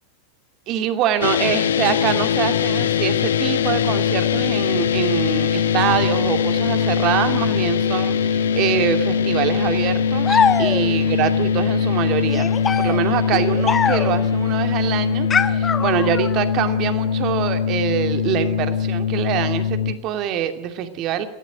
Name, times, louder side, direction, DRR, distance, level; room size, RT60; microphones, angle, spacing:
voice 1, 0.7-12.5 12.8-21.2, right 10 dB, 35° right, 7 dB, 2.5 m, -24 dB
sound 1, 1.2-19.9, left 7 dB, 65° left, 1.1 m, -21 dB
sound 2, 10.2-11.1 12.3-14.3 15.3-16.4, left 6 dB, 20° left, 1.1 m, -22 dB
22.0 x 17.0 x 9.3 m, 0.81 s
figure-of-eight pair, 90°, 0 cm